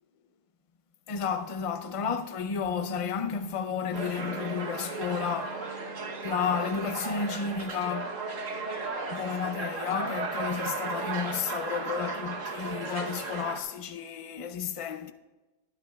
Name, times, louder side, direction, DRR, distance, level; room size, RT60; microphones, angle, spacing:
voice 1, 1.1-5.8 6.2-8.1 9.1-15.1, left 6 dB, 40° left, 0.5 m, -32 dB
Bass guitar, 2.6-8.9, equal, 65° left, 2.6 m, -47 dB
Cafe crowd, 3.9-13.6, right 3 dB, 90° right, 1.4 m, -35 dB
21.0 x 9.9 x 2.3 m
omnidirectional pair, 1.3 m